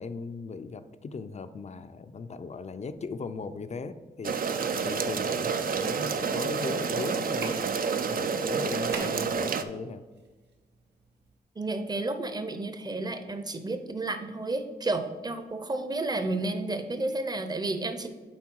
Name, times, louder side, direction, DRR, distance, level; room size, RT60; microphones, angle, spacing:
voice 1, 0.0-4.4 4.8-7.7 8.1-10.0, left 4 dB, 40° left, 12 dB, 0.5 m, -38 dB
sound 1, 2.6-11.4, right 3 dB, 80° right, 0.9 m, -46 dB
sound 2, 4.2-9.6, right 5 dB, 60° right, 0.5 m, -29 dB
voice 2, 11.6-18.1, right 2 dB, 25° right, 9 dB, 0.7 m, -31 dB
7.4 x 4.5 x 4.6 m, 1.3 s
wide cardioid pair, 95°, 17 cm